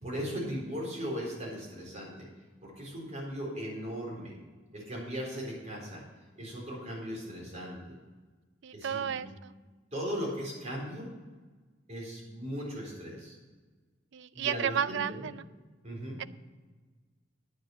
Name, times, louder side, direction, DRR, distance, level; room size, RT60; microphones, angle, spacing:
voice 1, 0.0-2.3 2.6-4.3 4.7-6.0 6.3-7.8 8.7-9.2 9.9-11.1 11.9-13.4 14.3-15.3 15.8-16.2, equal, 40° right, -3 dB, 4.1 m, -38 dB
voice 2, 8.6-9.5 14.1-15.4 16.2-16.3, right 8 dB, 65° right, 15 dB, 0.4 m, -33 dB
9.5 x 9.2 x 5.9 m, 1.4 s
head